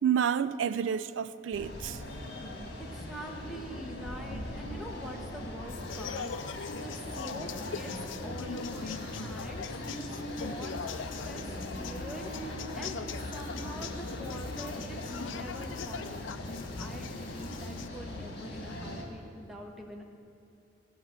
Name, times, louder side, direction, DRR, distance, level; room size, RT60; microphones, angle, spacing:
voice 1, 0.0-2.0, right 8 dB, 70° right, 0.4 m, -29 dB
sound 1, 1.5-19.0, left 1 dB, 60° left, 2.1 m, -40 dB
voice 2, 2.8-6.3 6.8-20.0, equal, ahead, 1.3 m, -45 dB
sound 2, 5.7-17.9, left 6 dB, 75° left, 0.5 m, -41 dB
16.0 x 6.1 x 8.6 m
head